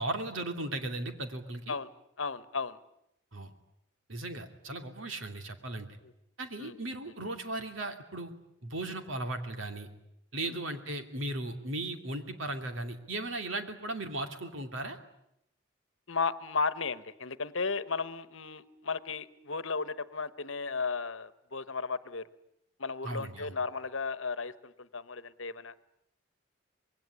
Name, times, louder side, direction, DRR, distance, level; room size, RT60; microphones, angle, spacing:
voice 1, 0.0-1.7 3.3-3.5 4.1-5.9 6.4-8.3 8.6-9.9 10.3-15.0 23.0-23.5, right 2 dB, 70° right, 6 dB, 2.7 m, -37 dB
voice 2, 2.2-2.8 6.6-6.8 10.4-10.5 16.1-22.3 22.8-25.7, left 4 dB, 75° left, 14 dB, 1.2 m, -34 dB
25.5 x 21.0 x 9.9 m, 0.80 s
head